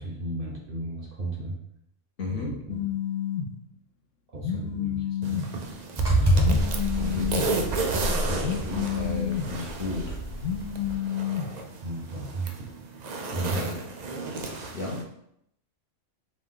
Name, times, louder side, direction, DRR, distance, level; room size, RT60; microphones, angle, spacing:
voice 1, 0.0-1.6 2.3-2.8 4.3-5.5 7.0-7.4 11.8-12.7 13.3-13.6, right 1 dB, 50° right, -2 dB, 0.8 m, -34 dB
voice 2, 2.2-2.6 7.1-7.3 8.3-10.2 13.3-13.8 14.7-15.1, left 2 dB, 50° left, -3 dB, 1.1 m, -34 dB
Telephone, 2.7-3.5 4.4-5.5 6.4-7.5 8.4-9.5 10.4-11.5, left 10 dB, 75° left, 1.0 m, -29 dB
sound 1, 5.2-15.0, right 3 dB, 85° right, 0.3 m, -34 dB
sound 2, 6.0-10.9, right 1 dB, 25° right, 0.7 m, -27 dB
5.2 x 2.4 x 3.7 m, 0.75 s
omnidirectional pair, 1.4 m